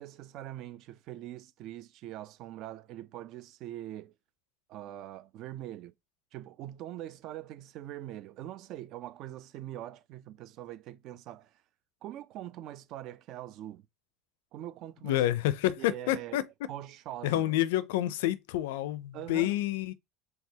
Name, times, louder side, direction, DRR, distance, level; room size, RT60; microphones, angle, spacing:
voice 1, 0.0-4.1 4.7-5.9 6.3-11.5 12.0-13.8 14.5-15.3 15.8-16.4 16.7-17.5 19.1-19.5, right 13 dB, 55° right, 0.5 m, -43 dB
voice 2, 15.0-16.4 17.2-19.9, left 14 dB, 85° left, 0.4 m, -28 dB
4.7 x 3.3 x 2.8 m
supercardioid pair, 120°, 0 cm